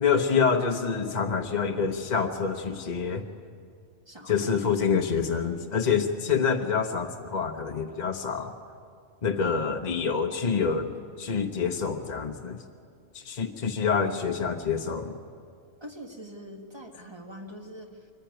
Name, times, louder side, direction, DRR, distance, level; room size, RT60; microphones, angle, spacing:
voice 1, 0.0-3.2 4.3-8.5 9.2-12.6 13.1-15.2, left 6 dB, 40° left, 3 dB, 1.0 m, -27 dB
voice 2, 4.1-4.5 4.8-4.9 5.2-5.3 13.4-13.5 15.8-18.1, equal, 20° right, 2 dB, 1.8 m, -44 dB
23.5 x 15.0 x 9.1 m, 2.3 s
omnidirectional pair, 1.3 m